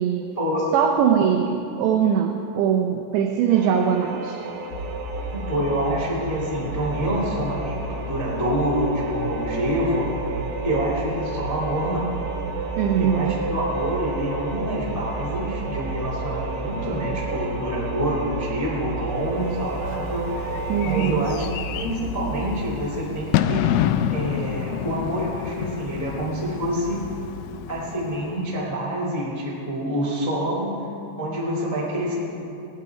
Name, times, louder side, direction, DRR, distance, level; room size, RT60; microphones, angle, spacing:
voice 1, 0.7-4.4 12.8-13.5 20.7-21.3, right 8 dB, 85° right, 2 dB, 2.5 m, -21 dB
sound 1, 3.5-21.4, right 4 dB, 70° right, 3.7 m, -33 dB
sound 2, 4.7-22.9, right 2 dB, 60° left, 1.9 m, -34 dB
voice 2, 5.3-10.1 10.6-12.1 13.0-20.3 20.8-23.6 24.1-27.0 27.7-30.8 31.2-32.1, equal, 30° left, -5 dB, 0.6 m, -27 dB
Bird / Fireworks, 19.3-28.5, left 11 dB, 90° left, 2.6 m, -29 dB
18.0 x 11.5 x 4.8 m, 2.9 s
omnidirectional pair, 6.0 m